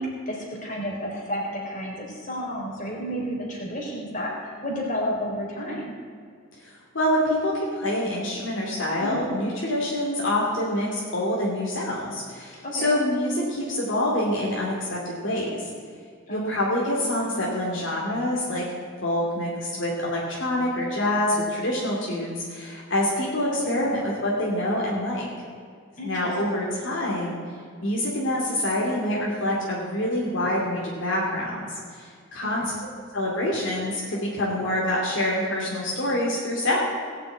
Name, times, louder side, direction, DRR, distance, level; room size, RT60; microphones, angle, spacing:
voice 1, 0.0-5.9 9.0-9.3 12.6-12.9 16.3-16.6 23.6-24.0 26.0-26.7 32.4-32.7, equal, 40° left, -2 dB, 3.9 m, -32 dB
voice 2, 6.6-15.6 16.3-18.6 19.0-25.3 26.0-27.4 27.8-32.6 33.1-36.8, left 1 dB, 65° left, -4 dB, 2.6 m, -26 dB
18.0 x 6.8 x 8.4 m, 2.1 s
head